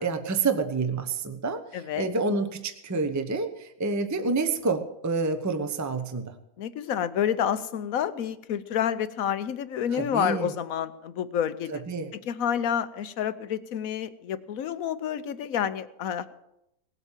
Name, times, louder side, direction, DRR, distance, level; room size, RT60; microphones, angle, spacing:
voice 1, 0.0-6.3 9.9-10.5 11.9-12.1, right 4 dB, 15° right, 7 dB, 0.8 m, -28 dB
voice 2, 1.7-2.1 6.6-11.8 12.1-16.3, left 9 dB, 70° left, 14 dB, 1.2 m, -29 dB
19.0 x 8.2 x 7.3 m, 0.84 s
omnidirectional pair, 1.5 m